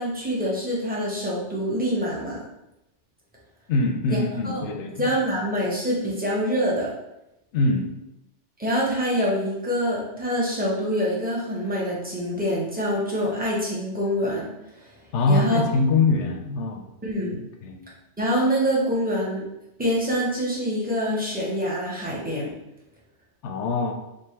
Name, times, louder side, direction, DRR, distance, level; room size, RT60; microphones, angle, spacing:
voice 1, 0.0-2.4 4.1-4.2 4.4-4.7 5.0-6.9 8.6-14.5 15.2-15.6 17.0-17.3 18.2-19.4 19.8-22.5, equal, 10° right, -5 dB, 0.9 m, -25 dB
voice 2, 3.7-4.9 7.5-7.9 15.1-16.9 17.6-17.8 23.4-23.9, left 3 dB, 75° left, 4 dB, 0.9 m, -23 dB
3.5 x 2.5 x 4.3 m, 0.89 s
omnidirectional pair, 1.2 m